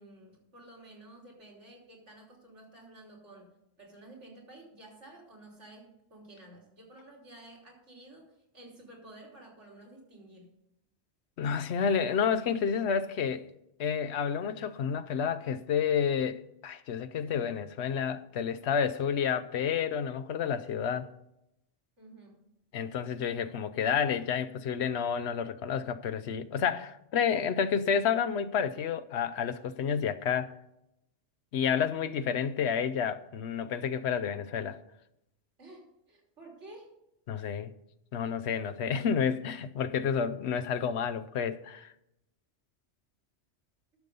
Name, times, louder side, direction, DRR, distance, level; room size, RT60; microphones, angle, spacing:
voice 1, 0.0-3.5 3.8-10.5 22.0-22.4 35.6-36.9, right 1 dB, 85° right, 3.6 m, -52 dB
voice 2, 11.4-13.5 13.8-21.1 22.7-30.6 31.5-34.8 37.3-37.7 38.1-41.9, left 7 dB, 70° left, 0.9 m, -30 dB
11.5 x 6.9 x 5.3 m
omnidirectional pair, 1.2 m